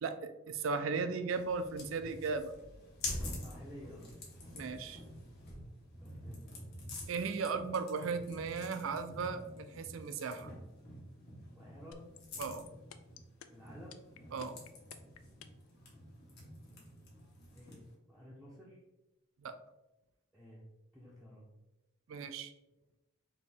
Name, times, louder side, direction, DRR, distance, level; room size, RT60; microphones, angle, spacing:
voice 1, 0.0-2.5 4.5-5.0 7.1-10.5 12.4-12.7 14.3-14.6 19.4-19.6 22.1-22.5, right 5 dB, 70° right, 10 dB, 0.4 m, -36 dB
sound 1, 1.3-17.9, left 1 dB, 50° left, 1.2 m, -47 dB
voice 2, 3.1-4.1 6.0-6.6 11.5-12.1 13.4-14.0 16.6-17.1 17.5-18.8 20.3-20.6 20.9-21.5, equal, 5° left, -7 dB, 0.6 m, -53 dB
sound 2, 11.9-15.7, left 9 dB, 80° left, 0.4 m, -52 dB
4.2 x 2.7 x 3.4 m, 1.0 s
head